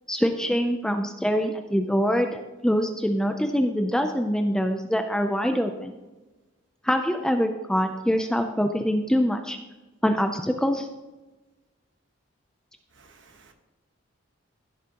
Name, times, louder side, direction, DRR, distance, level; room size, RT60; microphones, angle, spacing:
voice 1, 0.1-5.9 6.8-9.6 10.0-10.9, equal, 5° left, 5 dB, 0.4 m, -24 dB
voice 2, 13.0-13.5, right 4 dB, 60° right, 5 dB, 1.2 m, -55 dB
15.5 x 7.2 x 2.9 m, 1.1 s
head